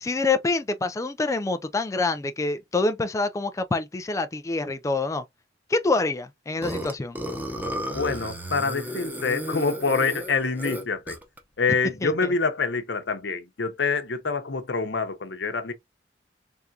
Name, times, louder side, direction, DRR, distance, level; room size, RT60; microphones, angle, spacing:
voice 1, 0.0-5.2 5.7-7.2 12.0-12.1, left 3 dB, 20° left, 0.3 m, -26 dB
Burping eructation, 6.6-11.4, equal, 10° right, 0.8 m, -33 dB
voice 2, 7.9-11.2 11.6-15.7, left 4 dB, 85° left, 0.8 m, -26 dB
3.6 x 3.5 x 2.7 m
head